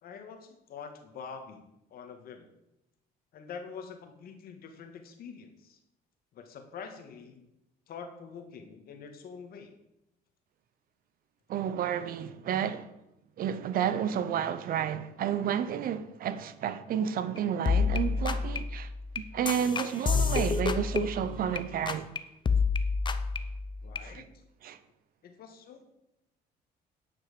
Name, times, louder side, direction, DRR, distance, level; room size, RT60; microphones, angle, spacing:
voice 1, 0.0-2.5 3.3-5.8 6.3-7.5 7.9-9.7 23.8-24.3 25.2-25.8, left 6 dB, 65° left, 1.9 m, -45 dB
voice 2, 11.5-12.9 13.4-18.9 19.2-22.1 24.0-24.2 24.6-24.8, right 9 dB, 60° right, 0.8 m, -31 dB
sound 1, 17.4-17.5 17.6-21.6 21.9-22.2 22.4-24.1, left 5 dB, 30° left, 0.7 m, -29 dB
Bowed string instrument, 20.1-21.0, right 5 dB, 15° right, 4.6 m, -41 dB
10.0 x 6.1 x 6.8 m
cardioid pair, 110°, 17 cm